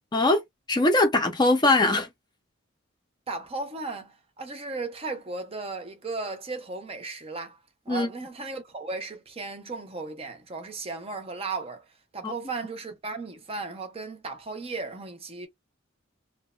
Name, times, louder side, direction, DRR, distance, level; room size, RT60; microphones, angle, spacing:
voice 1, 0.1-0.4 0.7-2.1 7.9-8.1 12.2-12.3, left 2 dB, 20° left, 0.5 m, -21 dB
voice 2, 3.3-11.9 12.1-15.5, right 3 dB, 30° right, 0.6 m, -36 dB
2.8 x 2.1 x 2.3 m
head